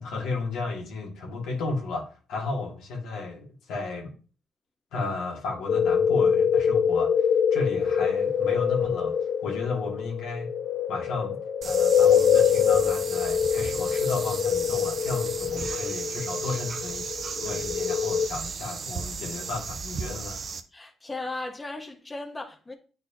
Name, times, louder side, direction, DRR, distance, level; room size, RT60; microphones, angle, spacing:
voice 1, 0.0-4.1 4.9-9.2 9.4-10.6 10.9-11.4 11.6-20.4, left 3 dB, 85° left, 1.7 m, -33 dB
sound 1, 5.7-18.3, left 7 dB, 60° left, 0.4 m, -24 dB
sound 2, 11.6-20.6, right 5 dB, 50° right, 0.7 m, -35 dB
voice 2, 20.7-22.7, left 2 dB, 20° left, 1.0 m, -36 dB
9.1 x 4.1 x 2.9 m
cardioid pair, 90°, 0 cm